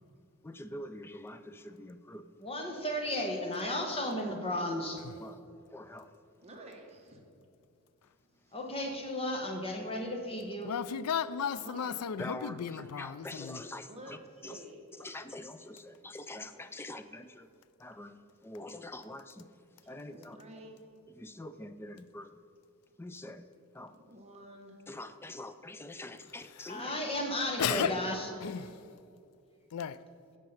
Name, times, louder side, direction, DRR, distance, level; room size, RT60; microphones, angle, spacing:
voice 1, 0.4-2.3 5.2-5.4 5.7-6.1 12.2-14.6 15.0-17.5 17.8-19.5 19.9-20.4 21.1-22.3 23.0-23.5 23.7-24.0 24.9-27.0 27.7-28.0, left 1 dB, 10° left, 0.4 m, -45 dB
voice 2, 2.4-5.0 8.5-10.7 26.7-28.3, left 1 dB, 25° left, 1.3 m, -34 dB
voice 3, 6.4-7.2 8.5-8.6 11.5-12.0 13.9-14.2 14.4-15.1 20.1-20.8 24.1-24.8 28.1-28.7, right 1 dB, 30° right, 1.3 m, -50 dB
voice 4, 10.6-13.6 27.6-27.9 28.4-28.6 29.7-30.0, left 7 dB, 80° left, 0.4 m, -34 dB
16.0 x 5.3 x 5.6 m
head